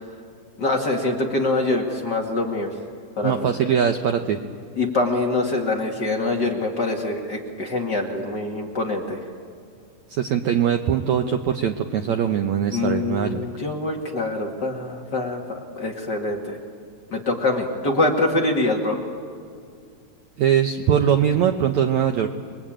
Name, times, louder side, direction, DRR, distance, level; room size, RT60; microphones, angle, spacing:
voice 1, 0.6-2.7 3.2-3.5 4.8-9.2 12.7-16.6 17.1-19.0, left 2 dB, 35° left, 0 dB, 2.0 m, -24 dB
voice 2, 3.2-4.4 10.1-13.4 20.4-22.3, right 8 dB, 80° right, 6 dB, 1.6 m, -21 dB
28.5 x 22.0 x 8.9 m, 2.3 s
omnidirectional pair, 4.5 m